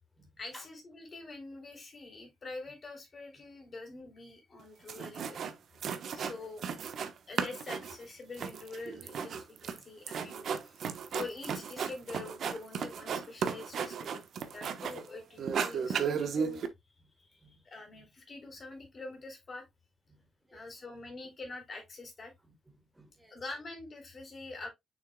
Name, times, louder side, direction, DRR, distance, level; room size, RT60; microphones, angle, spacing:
voice 1, 0.4-5.5 6.1-6.6 7.3-10.8 11.1-16.6 17.2-19.7 20.5-22.3 23.3-24.7, left 3 dB, 40° left, 3.3 m, -45 dB
sound 1, 4.6-4.7 4.9-5.5 5.8-7.1 7.4-15.1 15.4-16.7, right 7 dB, 65° right, 1.0 m, -35 dB
voice 2, 14.4-14.8 15.8-16.0 17.0-17.1 17.4-17.6 17.9-18.1 20.1-20.7 22.4-23.4, right 1 dB, 10° right, 1.5 m, -59 dB
6.5 x 6.4 x 2.3 m
cardioid pair, 120°, 0 cm